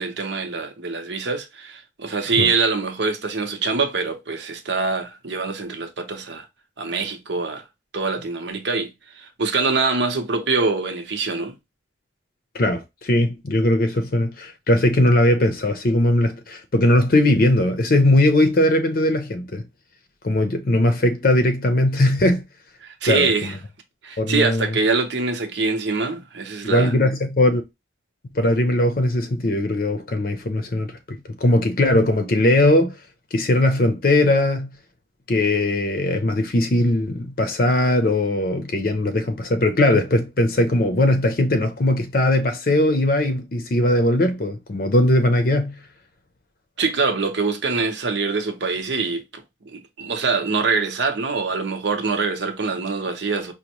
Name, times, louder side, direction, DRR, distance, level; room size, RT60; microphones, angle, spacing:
voice 1, 0.0-6.4 6.8-7.6 7.9-11.6 22.8-23.6 24.0-26.9 46.8-53.5, right 4 dB, 75° right, 0.8 m, -24 dB
voice 2, 12.5-19.6 20.2-22.4 23.1-23.5 24.2-24.7 26.6-27.6 28.3-32.9 33.3-34.7 35.3-45.8, left 1 dB, 50° left, 0.6 m, -19 dB
5.1 x 2.1 x 2.9 m
head